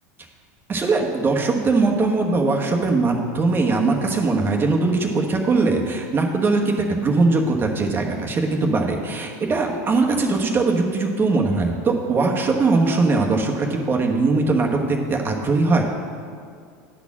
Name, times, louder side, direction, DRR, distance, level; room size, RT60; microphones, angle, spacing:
voice 1, 0.7-15.8, right 3 dB, 25° right, 1 dB, 1.2 m, -20 dB
9.9 x 4.3 x 7.2 m, 2.2 s
supercardioid pair, 115°, 9 cm